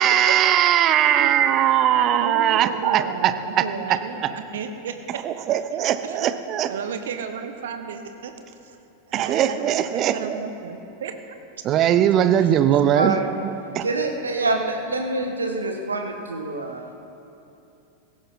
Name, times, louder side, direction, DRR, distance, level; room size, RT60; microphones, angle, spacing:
voice 1, 0.0-4.0 5.2-6.7 9.1-10.4 11.6-13.2 13.7-13.8, right 10 dB, 35° right, 11 dB, 0.7 m, -20 dB
voice 2, 0.9-1.3 1.9-5.2 6.0-6.3 6.7-8.3 8.7-8.8 9.1-11.1 11.8-11.9 12.7-12.8, right 6 dB, 60° right, 7 dB, 1.1 m, -33 dB
voice 3, 12.9-13.3 13.8-16.9, right 3 dB, 75° right, 3 dB, 1.5 m, -26 dB
16.5 x 15.5 x 4.2 m, 2.8 s
figure-of-eight pair, 90°, 0 cm